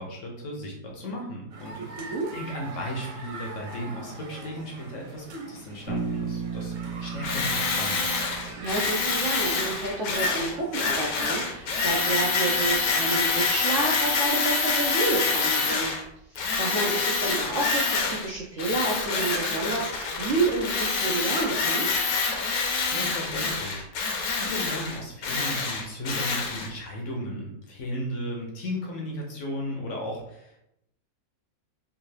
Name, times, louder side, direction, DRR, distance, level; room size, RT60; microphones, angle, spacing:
voice 1, 0.0-8.1 22.9-30.6, equal, 60° left, 0 dB, 0.8 m, -35 dB
sound 1, 1.5-14.3, right 3 dB, 70° right, 1.3 m, -44 dB
voice 2, 1.8-2.3 8.6-15.9 16.3-21.9, right 3 dB, 85° right, -3 dB, 0.6 m, -29 dB
Bass guitar, 5.9-9.9, right 5 dB, 45° right, 1.1 m, -35 dB
Tools, 7.2-16.0 16.4-18.3 18.6-26.7, left 4 dB, 75° left, 1.3 m, -26 dB
3.6 x 2.5 x 3.2 m, 0.80 s
omnidirectional pair, 2.0 m